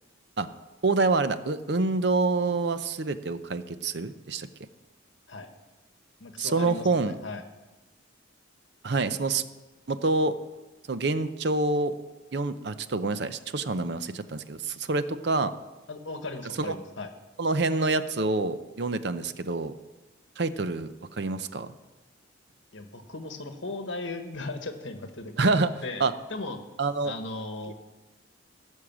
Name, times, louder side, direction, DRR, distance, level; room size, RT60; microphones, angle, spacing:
voice 1, 0.8-4.5 6.4-7.2 8.8-9.4 9.9-10.3 10.9-11.9 12.3-15.5 17.4-19.7 20.4-21.7 25.4-25.7 26.0-26.1 26.8-27.1, right 3 dB, 55° right, 12 dB, 0.6 m, -27 dB
voice 2, 6.2-7.4 15.9-17.1 22.7-26.0 26.3-26.6 27.0-27.7, left 2 dB, 70° left, 7 dB, 1.4 m, -37 dB
16.0 x 6.5 x 7.3 m, 1.1 s
head